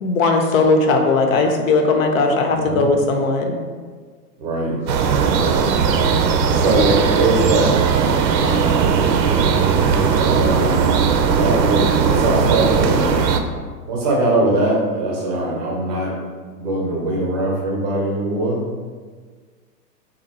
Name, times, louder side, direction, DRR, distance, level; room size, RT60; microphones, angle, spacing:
voice 1, 0.0-3.6, left 3 dB, 55° left, 3 dB, 0.7 m, -17 dB
voice 2, 2.4-2.9 4.4-4.8 5.2-5.8 6.5-7.9 8.3-9.0 10.2-13.2 13.9-16.2 16.5-18.6, right 2 dB, 25° right, -2 dB, 0.6 m, -22 dB
sound 1, 4.9-13.4, right 6 dB, 90° right, 0.6 m, -18 dB
3.5 x 2.8 x 4.1 m, 1.5 s
hypercardioid pair, 150°, 49 cm